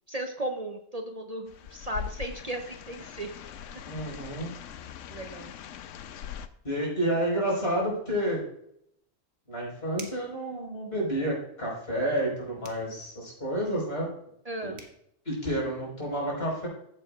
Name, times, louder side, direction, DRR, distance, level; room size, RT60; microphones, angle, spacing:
voice 1, 0.1-3.3 5.1-5.5 14.5-14.8, right 1 dB, 40° right, 4 dB, 0.6 m, -35 dB
sound 1, 1.5-6.5, left 9 dB, 75° left, 0.9 m, -41 dB
voice 2, 3.9-4.5 6.6-8.4 9.5-14.1 14.6-14.7 15.2-16.7, right 1 dB, 50° left, -4 dB, 4.7 m, -30 dB
sound 2, 10.0-10.4 12.6-12.9 14.4-14.5 14.8-15.0, right 4 dB, 55° right, 1.2 m, -45 dB
14.5 x 7.5 x 2.4 m, 0.74 s
omnidirectional pair, 1.3 m